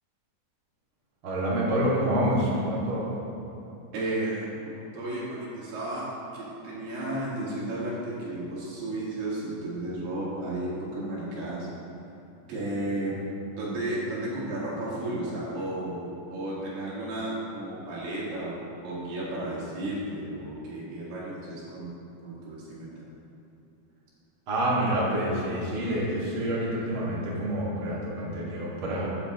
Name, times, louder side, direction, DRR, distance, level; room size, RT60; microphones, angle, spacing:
voice 1, 1.2-3.1 24.5-29.1, right 1 dB, 40° right, -7 dB, 2.0 m, -27 dB
voice 2, 3.9-4.5 4.9-11.7 12.5-13.2 13.6-16.1 16.3-21.9 22.2-23.0, right 1 dB, 65° right, -7 dB, 3.8 m, -33 dB
13.5 x 9.1 x 3.0 m, 2.9 s
omnidirectional pair, 5.2 m